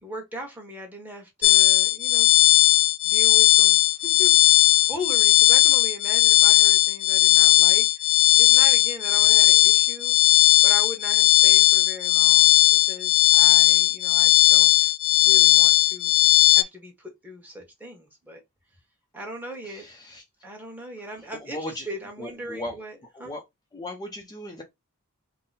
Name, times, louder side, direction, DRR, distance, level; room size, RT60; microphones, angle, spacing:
voice 1, 0.0-2.3 3.0-10.2 10.6-16.1 16.5-18.4 19.1-19.8 20.4-23.3, equal, 10° right, 1.2 m, -39 dB
sound 1, 1.4-16.6, left 16 dB, 65° left, 0.4 m, -17 dB
voice 2, 21.5-21.8 22.2-22.7 23.2-23.4 23.7-24.6, left 1 dB, 20° left, 0.6 m, -35 dB
3.8 x 2.1 x 3.9 m
head